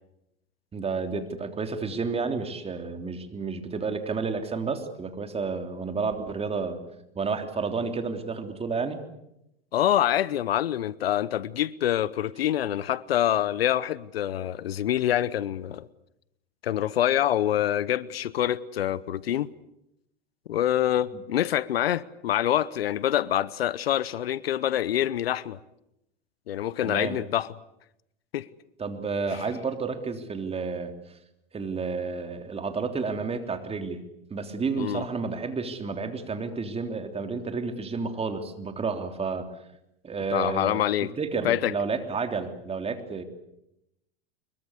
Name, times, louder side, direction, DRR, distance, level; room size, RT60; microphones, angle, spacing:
voice 1, 0.7-6.8 7.1-9.0 21.1-21.2 26.8-27.2 28.8-30.9 31.5-34.0 34.3-39.5 40.0-40.8 41.2-43.2, right 4 dB, 20° right, 3.4 m, -31 dB
voice 2, 9.7-15.9 16.6-19.5 20.5-25.6 26.5-27.5 28.3-28.5 29.3-29.4 34.8-35.0 40.3-41.1 41.4-41.7, left 11 dB, 80° left, 0.9 m, -26 dB
24.5 x 22.5 x 8.3 m
hypercardioid pair, 100°, 30 cm